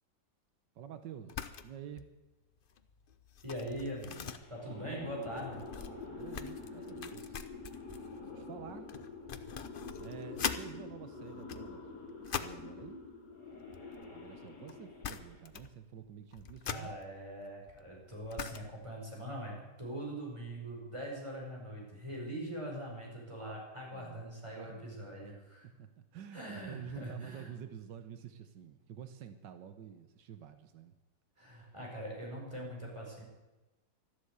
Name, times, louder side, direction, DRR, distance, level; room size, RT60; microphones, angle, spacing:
voice 1, 0.7-2.1 4.7-5.1 6.1-7.4 8.3-8.9 10.0-11.9 12.2-13.0 14.1-16.9 23.9-25.1 25.8-30.9, right 9 dB, 90° right, 9 dB, 1.6 m, -49 dB
sound 1, 1.3-1.7 2.0-2.2 2.6-10.7 11.3-12.7 13.6-14.4 14.7-14.8 15.0-15.8 16.1-18.9, left 7 dB, 55° left, 0.6 m, -43 dB
voice 2, 3.4-5.6 16.7-25.7 26.3-27.5 31.4-33.2, right 1 dB, 15° right, -2 dB, 5.0 m, -42 dB
sound 2, 4.3-15.5, left 3 dB, 75° left, 3.7 m, -46 dB
13.0 x 12.0 x 8.2 m, 1.1 s
omnidirectional pair, 1.9 m